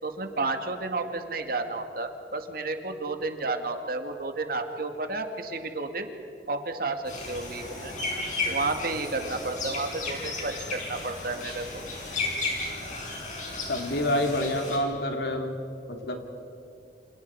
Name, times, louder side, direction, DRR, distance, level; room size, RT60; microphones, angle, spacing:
voice 1, 0.0-6.1 6.5-7.9 8.5-11.8, right 3 dB, 55° right, 6 dB, 2.1 m, -31 dB
sound 1, 7.1-14.8, left 2 dB, 45° left, 6.0 m, -34 dB
voice 2, 13.7-15.6 15.9-16.1, left 1 dB, 70° left, 3 dB, 2.9 m, -27 dB
29.0 x 28.0 x 4.7 m, 2.8 s
head